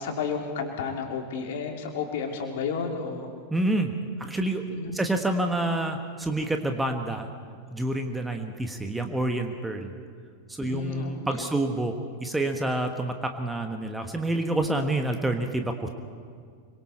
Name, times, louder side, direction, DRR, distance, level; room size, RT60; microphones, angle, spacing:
voice 1, 0.0-3.3 4.7-5.0 10.6-11.5, left 5 dB, 55° left, 2 dB, 3.0 m, -32 dB
voice 2, 3.5-3.9 4.2-4.6 4.9-7.3 7.7-9.9 10.5-15.9, right 1 dB, 5° right, 5 dB, 1.4 m, -28 dB
26.0 x 24.0 x 4.4 m, 2.1 s
figure-of-eight pair, 90°, 0 cm